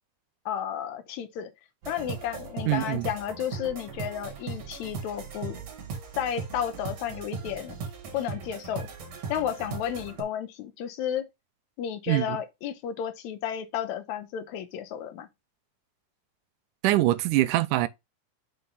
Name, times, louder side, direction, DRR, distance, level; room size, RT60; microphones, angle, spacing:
voice 1, 0.5-1.5 1.9-5.6 6.2-7.8 8.1-8.9 9.3-11.3 11.8-15.3, left 9 dB, 75° left, 2.0 m, -32 dB
sound 1, 1.8-10.2, right 5 dB, 55° right, 2.6 m, -38 dB
voice 2, 2.7-3.1 12.1-12.4 16.8-17.9, right 16 dB, 85° right, 2.1 m, -23 dB
5.9 x 3.8 x 5.4 m
omnidirectional pair, 3.6 m